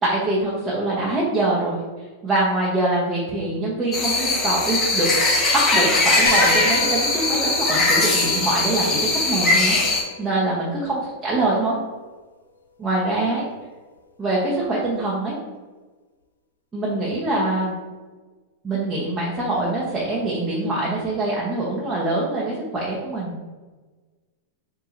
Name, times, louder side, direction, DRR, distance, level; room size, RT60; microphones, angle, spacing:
voice 1, 0.0-1.8 2.2-5.1 5.5-9.8 10.2-11.8 12.8-13.4 14.2-15.4 16.7-17.7 18.6-23.4, right 2 dB, 15° right, -6 dB, 1.1 m, -24 dB
sound 1, 3.9-10.0, left 2 dB, 25° left, 1.3 m, -20 dB
Hiss, 6.1-7.5, right 7 dB, 45° right, 0.5 m, -33 dB
sound 2, 6.3-11.3 12.9-13.0 14.6-14.7, left 5 dB, 85° left, 0.5 m, -33 dB
4.5 x 3.7 x 2.6 m, 1.3 s
hypercardioid pair, 100°, 0 cm